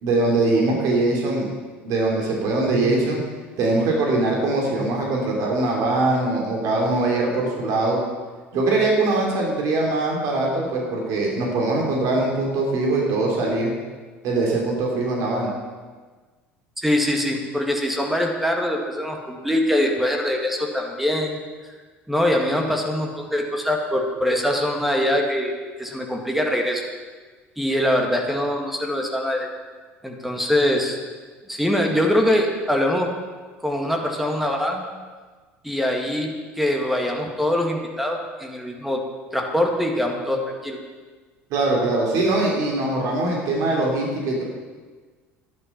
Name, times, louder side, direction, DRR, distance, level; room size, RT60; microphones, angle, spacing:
voice 1, 0.0-1.5 1.8-3.2 3.6-8.0 8.5-13.7 14.2-15.5 41.5-44.4, right 2 dB, 55° right, -1 dB, 3.0 m, -22 dB
voice 2, 16.8-21.4 22.1-26.8 27.6-29.5 30.0-31.0 31.5-33.2 33.6-34.9 35.6-39.0 39.3-40.8, left 1 dB, ahead, 1 dB, 1.9 m, -23 dB
11.0 x 11.0 x 5.8 m, 1.4 s
figure-of-eight pair, 65°, 7 cm